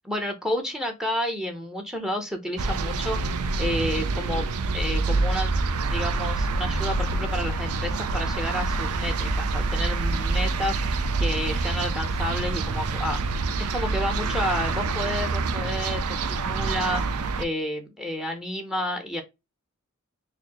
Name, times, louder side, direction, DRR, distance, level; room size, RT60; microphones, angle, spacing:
voice 1, 0.0-4.5 4.7-5.6 5.9-13.2 13.6-19.2, equal, 5° right, 0.7 m, -30 dB
sound 1, 2.6-17.4, right 3 dB, 85° right, 0.5 m, -26 dB
4.1 x 2.7 x 2.9 m
head